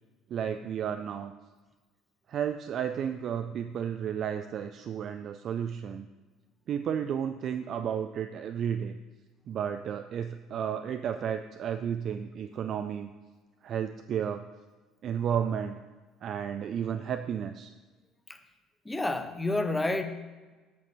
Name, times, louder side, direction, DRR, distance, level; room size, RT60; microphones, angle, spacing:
voice 1, 0.3-1.3 2.3-6.1 6.7-9.0 9.5-13.1 13.6-14.4 15.0-15.8 16.2-17.7, right 8 dB, 45° right, 8 dB, 0.4 m, -32 dB
voice 2, 18.9-20.0, left 2 dB, 15° left, 9 dB, 0.8 m, -29 dB
7.5 x 6.0 x 5.3 m, 1.3 s
figure-of-eight pair, 55°, 0 cm